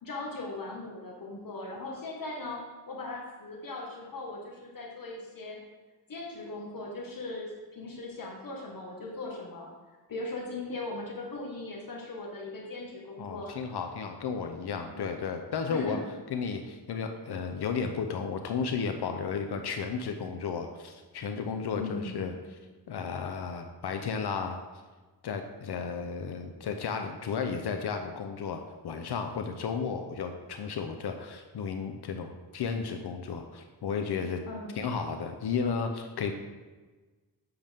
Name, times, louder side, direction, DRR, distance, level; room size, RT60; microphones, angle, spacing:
voice 1, 0.0-5.6 6.1-13.6 14.9-15.0 15.7-16.0 21.7-22.4 34.5-34.9, left 2 dB, 55° left, -2 dB, 1.5 m, -39 dB
voice 2, 13.2-16.0 16.3-22.3 22.9-24.6 25.2-34.4 34.7-36.3, left 5 dB, 75° left, 6 dB, 0.7 m, -33 dB
7.9 x 6.7 x 3.5 m, 1.3 s
wide cardioid pair, 140°, 40 cm